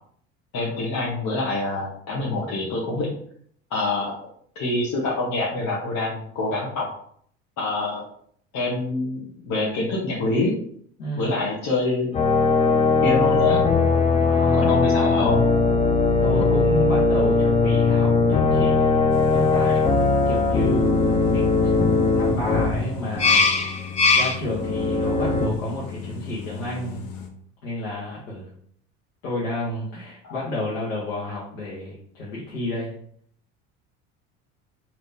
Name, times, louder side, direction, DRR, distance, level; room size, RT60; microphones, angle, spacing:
voice 1, 0.5-3.1 3.7-4.1 4.5-6.9 7.6-8.0 8.5-10.5 11.2-12.1 13.0-13.6 14.5-15.4 30.2-30.4, left 2 dB, 50° left, -5 dB, 1.1 m, -25 dB
voice 2, 11.0-11.3 14.2-14.8 16.2-19.0 19.3-19.8 20.2-21.7 22.1-27.1 27.6-28.5 29.2-32.9, left 1 dB, 90° left, -6 dB, 1.2 m, -31 dB
sound 1, 12.1-25.5, left 3 dB, 20° left, 0.4 m, -20 dB
sound 2, 19.1-27.3, left 7 dB, 65° left, 0.8 m, -37 dB
3.5 x 2.9 x 2.7 m, 0.62 s
hypercardioid pair, 85°, 37 cm